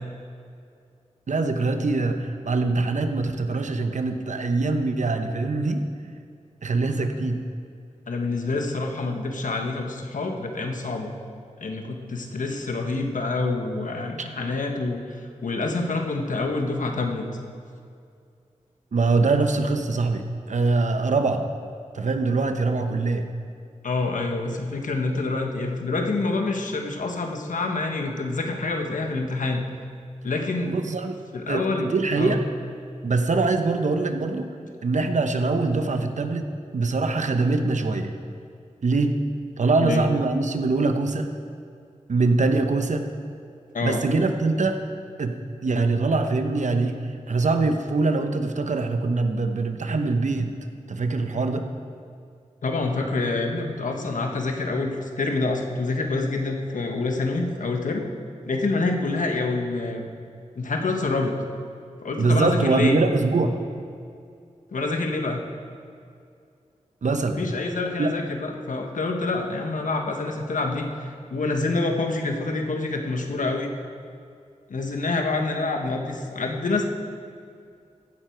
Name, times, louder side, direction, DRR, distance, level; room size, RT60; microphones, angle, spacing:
voice 1, 1.3-5.9 6.6-7.4 14.2-14.3 18.9-21.5 21.9-23.3 30.7-32.4 33.0-34.5 34.8-38.1 38.8-39.1 39.6-41.4 42.1-43.0 43.8-44.8 45.2-45.4 45.6-47.0 47.3-50.5 50.9-51.7 62.2-63.6 67.0-67.4 68.0-68.2, right 3 dB, 70° right, 6 dB, 0.9 m, -23 dB
voice 2, 8.1-11.1 11.6-17.3 23.8-29.6 30.2-30.7 31.3-32.4 39.8-40.1 43.7-44.0 52.6-58.0 58.5-60.1 60.5-61.3 62.0-63.0 64.7-65.4 67.4-73.7 74.7-76.8, left 3 dB, 80° left, 3 dB, 1.3 m, -27 dB
15.0 x 9.7 x 4.6 m, 2.3 s
wide cardioid pair, 65°, 13 cm